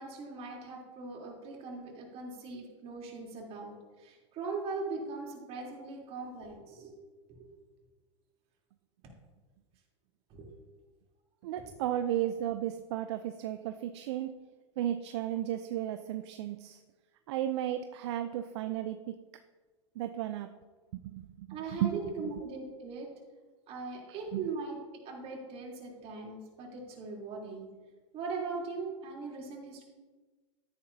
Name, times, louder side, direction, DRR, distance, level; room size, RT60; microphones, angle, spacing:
voice 1, 0.0-6.9 7.3-7.5 10.3-10.5 11.6-11.7 21.5-23.1 23.7-24.8 25.0-27.7 28.1-29.8, right 4 dB, 40° right, -2 dB, 3.6 m, -40 dB
voice 2, 11.4-14.4 14.8-16.8 17.3-19.2 20.0-20.5 21.0-21.9 22.2-22.3 24.3-24.5, right 12 dB, 65° right, 9 dB, 0.6 m, -34 dB
13.0 x 10.0 x 2.8 m, 1.3 s
hypercardioid pair, 105°, 16 cm